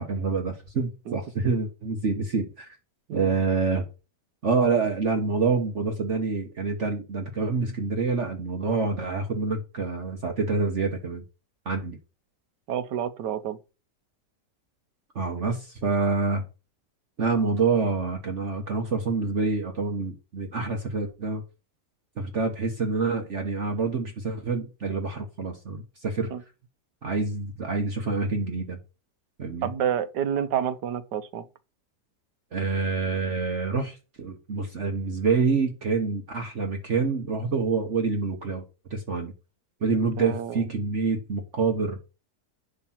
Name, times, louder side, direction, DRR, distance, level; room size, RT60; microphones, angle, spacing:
voice 1, 0.0-2.8 3.1-3.9 4.4-11.2 11.6-12.0 15.1-16.4 17.2-21.4 22.2-26.3 27.0-28.8 29.4-29.7 32.5-38.6 38.9-39.3 39.8-42.0, right 4 dB, 45° right, 1.4 m, -27 dB
voice 2, 12.7-13.6 26.3-26.4 29.6-31.5 40.2-40.7, right 9 dB, 85° right, 1.5 m, -29 dB
11.0 x 3.7 x 5.8 m
omnidirectional pair, 1.8 m